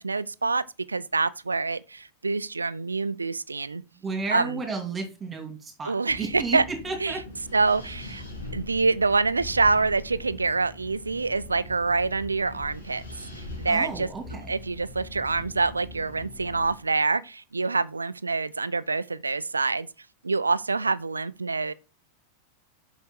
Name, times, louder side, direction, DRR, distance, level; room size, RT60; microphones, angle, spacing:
voice 1, 0.0-3.8 4.3-4.6 5.8-6.6 7.0-7.2 7.5-8.2 8.5-13.0 13.4-19.9 20.2-21.7, right 3 dB, 80° right, 0.4 m, -26 dB
voice 2, 3.9-6.6 6.8-7.2 13.7-14.5, right 4 dB, 20° right, 2.7 m, -33 dB
Wind, 6.1-16.8, left 2 dB, 80° left, 4.0 m, -42 dB
7.8 x 6.2 x 4.6 m
figure-of-eight pair, 90°, 0 cm